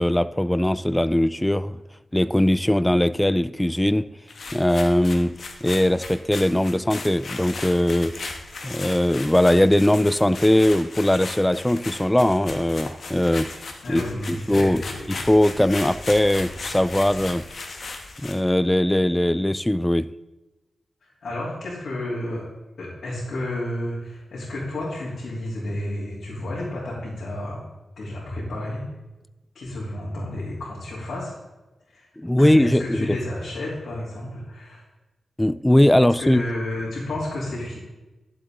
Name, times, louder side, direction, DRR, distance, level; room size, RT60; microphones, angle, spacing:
voice 1, 0.0-1.8 2.1-4.1 4.5-5.3 5.6-8.3 8.6-13.5 13.9-14.8 15.1-17.4 18.2-20.1 32.2-33.2 35.4-36.4, left 1 dB, 10° left, 15 dB, 0.3 m, -20 dB
sound 1, 4.3-18.5, left 3 dB, 60° left, 1.4 m, -37 dB
voice 2, 13.8-15.2 16.9-17.1 21.0-22.4 22.8-27.7 28.0-28.8 29.5-31.4 31.9-32.1 32.4-34.8 36.2-37.8, left 1 dB, 75° left, -8 dB, 3.2 m, -31 dB
11.5 x 7.7 x 3.8 m, 1.1 s
cardioid pair, 80°, 0 cm